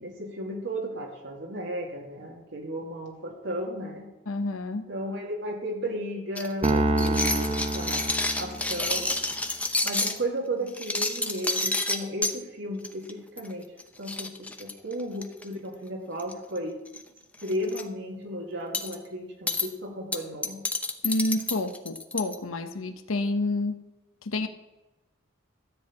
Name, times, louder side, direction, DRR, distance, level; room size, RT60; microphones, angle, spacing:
voice 1, 0.0-4.1 4.9-9.1 9.8-13.7 14.0-16.8 17.4-20.6, right 1 dB, 60° right, -1 dB, 2.5 m, -34 dB
voice 2, 4.3-4.9 21.0-23.8 24.2-24.5, left 2 dB, 90° left, 9 dB, 0.9 m, -29 dB
sound 1, 6.4-10.2 10.7-12.3 12.8-13.1 13.4-13.5 13.8-13.9 14.1-15.4 16.2-16.6 16.9-17.0 17.4-17.8 18.7-19.0 19.5-19.7 20.1-22.3, left 2 dB, 5° left, 0.7 m, -29 dB
Piano, 6.6-9.1, right 2 dB, 30° right, 0.8 m, -27 dB
13.0 x 4.6 x 8.5 m, 1.0 s
head